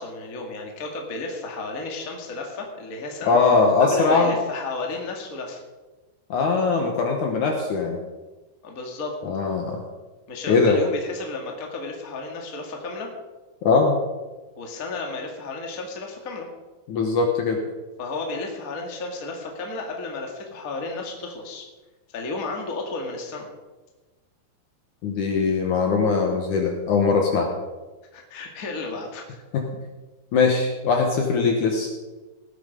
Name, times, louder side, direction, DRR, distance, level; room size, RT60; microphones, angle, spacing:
voice 1, 0.0-3.4 3.8-5.6 8.6-9.2 10.3-13.1 14.6-16.5 18.0-21.7 22.1-23.5 28.1-29.2, left 3 dB, 30° left, 1 dB, 1.6 m, -33 dB
voice 2, 3.3-4.3 6.3-8.0 9.2-9.8 10.5-10.8 13.6-13.9 16.9-17.6 25.0-27.5 29.5-29.7 30.3-31.9, left 4 dB, 65° left, 2 dB, 2.3 m, -21 dB
18.5 x 7.8 x 5.2 m, 1.2 s
omnidirectional pair, 4.5 m